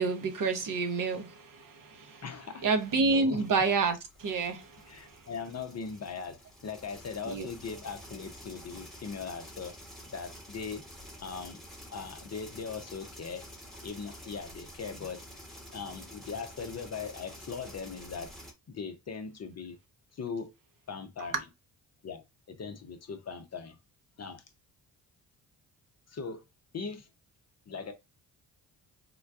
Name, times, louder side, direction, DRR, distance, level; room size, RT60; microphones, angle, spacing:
voice 1, 0.0-2.2 2.6-5.2 7.3-7.5, right 4 dB, 45° right, 0.9 m, -29 dB
voice 2, 2.2-2.7 2.9-3.4 4.9-9.8 10.1-10.8 11.2-11.6 11.9-13.5 13.8-15.2 15.7-18.3 18.7-19.8 20.1-20.5 20.9-21.4 22.0-23.8 24.2-24.4 26.1-26.4 26.7-27.1 27.7-27.9, left 5 dB, 35° left, 0.6 m, -40 dB
sound 1, 2.6-18.5, equal, ahead, 1.1 m, -49 dB
3.7 x 2.2 x 2.4 m
supercardioid pair, 55°, 45 cm